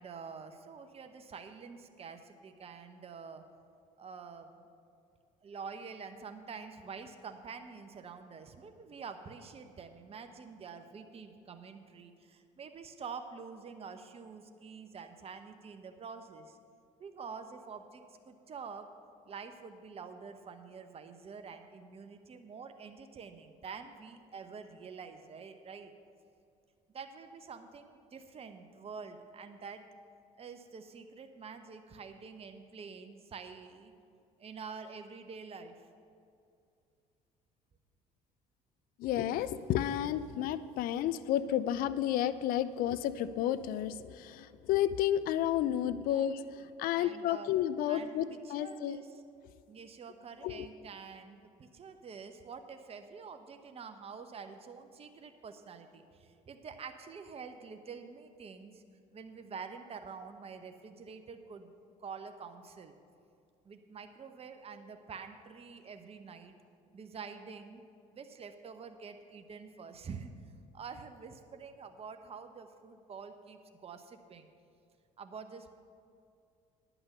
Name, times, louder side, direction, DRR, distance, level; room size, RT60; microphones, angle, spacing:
voice 1, 0.0-3.4 4.0-4.7 5.4-16.6 17.0-18.9 19.3-25.9 26.9-29.9 30.4-33.9 34.4-35.8 46.1-46.3 46.9-47.5 47.8-48.2 48.4-49.2 49.7-58.8 59.1-61.7 62.0-63.0 63.6-66.5 66.9-67.8 68.1-70.3 70.7-74.5 75.2-75.7, right 5 dB, 40° right, 7 dB, 0.9 m, -47 dB
voice 2, 39.0-49.0 50.4-50.7, left 11 dB, 65° left, 15 dB, 0.4 m, -31 dB
10.5 x 6.1 x 7.8 m, 2.4 s
hypercardioid pair, 65°, 16 cm